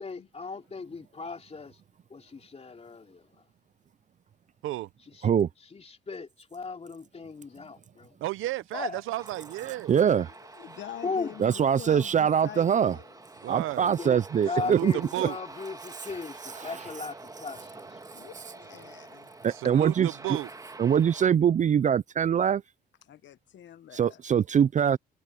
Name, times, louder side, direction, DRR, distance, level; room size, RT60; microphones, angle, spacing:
voice 1, 0.0-1.8 2.1-3.4 5.1-5.3 5.7-8.2 8.7-9.0 11.0-11.4 13.9-18.2, left 4 dB, 30° left, 3.3 m, -37 dB
voice 2, 8.2-10.0 13.4-13.9 14.6-14.9 15.1-15.4 19.5-20.5, right 15 dB, 85° right, 0.7 m, -33 dB
Aircraft, 9.2-21.3, right 2 dB, 15° right, 1.7 m, -47 dB
voice 3, 9.9-10.3 11.4-13.0 13.5-14.9 15.2-15.3 16.6-16.7 19.4-20.1 20.8-22.6 23.9-25.0, right 8 dB, 40° right, 0.4 m, -23 dB
voice 4, 10.4-13.2 18.1-19.3 23.0-24.2, left 11 dB, 70° left, 1.3 m, -45 dB
cardioid pair, 90°, 20 cm